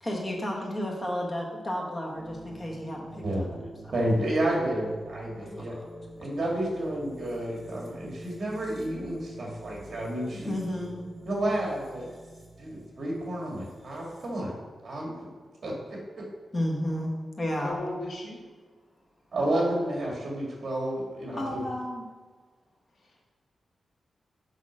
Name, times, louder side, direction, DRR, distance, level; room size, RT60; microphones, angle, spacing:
voice 1, 0.0-3.6 3.8-3.9 5.4-6.1 10.3-11.0 16.5-17.8 21.4-22.0, left 1 dB, 25° left, -1 dB, 1.3 m, -32 dB
sound 1, 2.1-14.4, right 1 dB, 25° right, 1.5 m, -46 dB
voice 2, 3.9-5.7 6.2-10.6 11.3-12.1 12.6-15.1 15.6-16.2 19.3-21.6, right 1 dB, 50° right, -2 dB, 2.2 m, -30 dB
voice 3, 17.6-18.4 21.3-21.5 23.0-23.2, left 1 dB, 70° left, -2 dB, 1.6 m, -37 dB
6.5 x 5.0 x 6.2 m, 1.4 s
wide cardioid pair, 160°, 0 cm